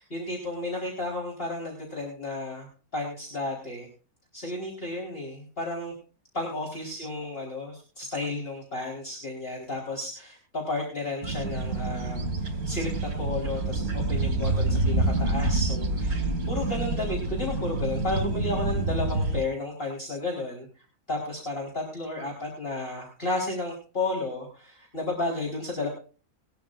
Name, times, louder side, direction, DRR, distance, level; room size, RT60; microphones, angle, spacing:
voice 1, 0.0-3.9 4.3-5.9 6.3-25.9, left 2 dB, 40° left, -2 dB, 4.7 m, -33 dB
sound 1, 11.2-19.4, right 2 dB, 75° right, 2.3 m, -27 dB
22.0 x 12.5 x 2.5 m, 0.37 s
omnidirectional pair, 1.5 m